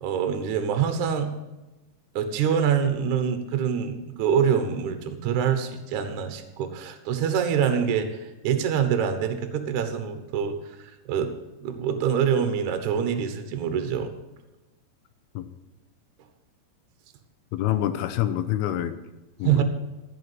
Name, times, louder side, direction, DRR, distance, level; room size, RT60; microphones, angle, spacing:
voice 1, 0.0-1.3 2.2-11.3 11.6-14.1 19.4-19.6, right 8 dB, 65° right, 7 dB, 2.1 m, -25 dB
voice 2, 17.5-18.9 19.4-19.6, left 12 dB, 85° left, 11 dB, 2.6 m, -26 dB
15.0 x 6.0 x 7.9 m, 1.0 s
omnidirectional pair, 4.5 m